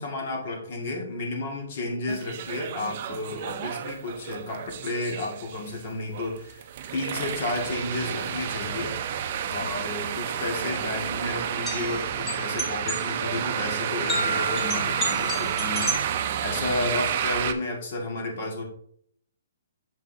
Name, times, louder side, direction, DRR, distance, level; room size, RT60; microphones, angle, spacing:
voice 1, 0.0-6.6 6.9-8.9 9.5-18.6, left 2 dB, 45° left, 0 dB, 2.0 m, -32 dB
sound 1, 2.1-17.5, right 9 dB, 40° right, 0.5 m, -30 dB
sound 2, 11.6-15.9, right 1 dB, 5° left, 1.3 m, -32 dB
7.2 x 5.4 x 2.7 m, 0.66 s
hypercardioid pair, 160°, 0 cm